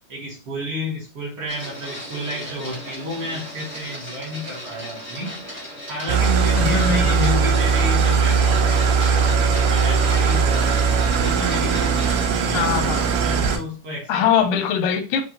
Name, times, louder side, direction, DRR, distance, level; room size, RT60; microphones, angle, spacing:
voice 1, 0.1-5.4 5.9-10.9 11.2-14.3, equal, 55° right, 1.8 m, -32 dB
Printer, 1.5-12.3, equal, 5° right, 1.0 m, -36 dB
Engine starting / Idling, 6.1-13.6, right 5 dB, 80° right, 1.7 m, -19 dB
voice 2, 6.5-7.5 12.5-13.1 14.1-15.2, left 7 dB, 90° left, 2.2 m, -22 dB
7.5 x 2.5 x 2.6 m
omnidirectional pair, 3.7 m